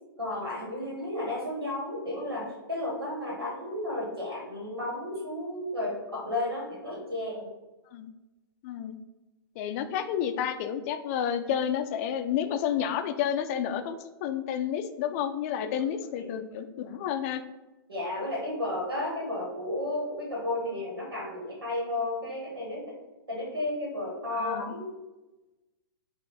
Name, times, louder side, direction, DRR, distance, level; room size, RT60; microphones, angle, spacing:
voice 1, 0.2-7.5 15.6-15.9 16.2-16.3 17.9-23.0 23.3-24.9, left 1 dB, 85° right, -3 dB, 1.5 m, -33 dB
voice 2, 8.6-9.0 9.6-17.4 24.3-24.7, left 9 dB, 40° left, 9 dB, 0.4 m, -30 dB
3.9 x 2.6 x 4.7 m, 1.1 s
figure-of-eight pair, 110°, 12 cm